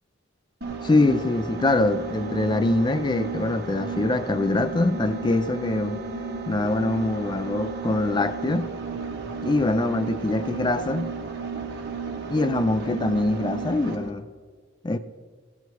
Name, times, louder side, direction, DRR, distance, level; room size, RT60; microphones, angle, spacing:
sound 1, 0.6-14.1, right 4 dB, 60° right, 1.4 m, -33 dB
voice 1, 0.8-6.0 6.5-8.7 9.4-11.1 12.3-14.3 14.8-15.0, left 2 dB, 25° left, 0.4 m, -24 dB
14.5 x 8.1 x 4.6 m
head